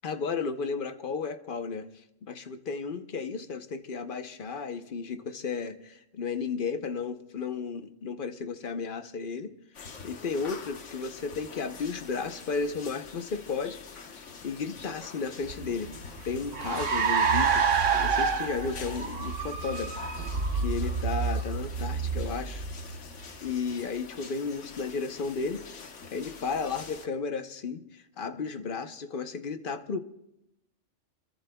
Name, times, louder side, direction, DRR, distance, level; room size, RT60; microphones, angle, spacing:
voice 1, 0.0-9.5 10.0-13.8 14.2-16.0 16.2-23.0 23.4-25.7 26.1-30.0, left 5 dB, 50° left, 9 dB, 0.9 m, -34 dB
sound 1, 9.7-27.1, left 5 dB, 75° left, 1.5 m, -46 dB
Car, 15.5-23.3, right 5 dB, 85° right, 1.5 m, -28 dB
28.5 x 21.5 x 2.3 m, 0.84 s
omnidirectional pair, 1.2 m